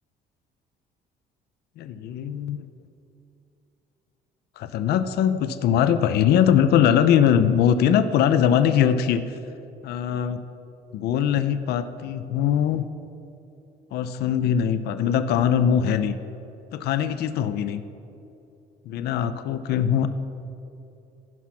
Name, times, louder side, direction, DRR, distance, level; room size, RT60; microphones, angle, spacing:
voice 1, 1.8-2.6 4.6-9.2 9.8-10.4 10.9-12.9 13.9-16.1 16.7-17.8 18.9-20.1, left 9 dB, 70° left, 11 dB, 0.6 m, -21 dB
15.0 x 5.9 x 5.9 m, 2.8 s
cardioid pair, 110°, 17 cm